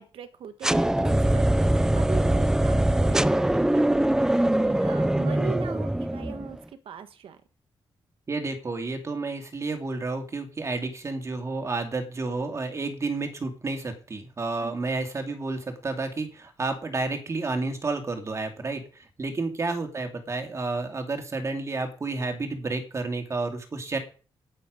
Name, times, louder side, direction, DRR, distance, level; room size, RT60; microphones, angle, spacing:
voice 1, 0.0-7.4 14.6-14.8 19.3-19.4, right 7 dB, 85° right, 9 dB, 1.5 m, -40 dB
sound 1, 0.6-6.6, right 1 dB, 5° right, 0.5 m, -22 dB
voice 2, 8.3-24.0, right 3 dB, 30° right, 5 dB, 2.6 m, -31 dB
11.5 x 10.0 x 5.2 m, 0.38 s
wide cardioid pair, 130°, 9 cm